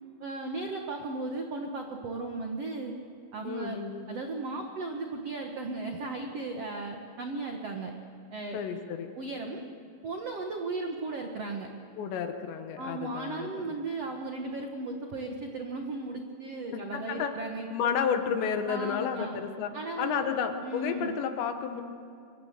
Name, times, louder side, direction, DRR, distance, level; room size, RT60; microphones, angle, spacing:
voice 1, 0.2-2.9 3.3-3.8 4.1-7.9 8.3-8.6 9.1-9.6 10.0-11.7 12.8-17.7 18.7-19.4 19.7-20.2 20.6-21.1, right 3 dB, 85° right, 3 dB, 1.3 m, -36 dB
voice 2, 3.4-4.1 8.5-9.1 12.0-13.7 16.9-17.3 17.7-21.8, left 7 dB, 75° left, 7 dB, 3.5 m, -31 dB
25.5 x 23.5 x 6.8 m, 2.5 s
omnidirectional pair, 5.3 m